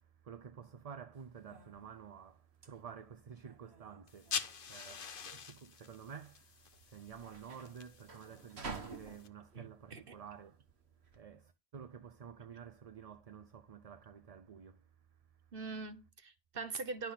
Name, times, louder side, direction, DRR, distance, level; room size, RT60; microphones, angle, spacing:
voice 1, 0.0-10.6 11.0-15.5, right 7 dB, 40° right, 0.6 m, -51 dB
sound 1, 1.1-11.2, right 4 dB, 80° right, 2.0 m, -52 dB
sound 2, 4.1-9.3, left 6 dB, 55° left, 1.1 m, -45 dB
voice 2, 9.5-10.1 15.5-17.1, right 4 dB, 60° right, 1.4 m, -43 dB
12.0 x 5.8 x 5.7 m
omnidirectional pair, 1.1 m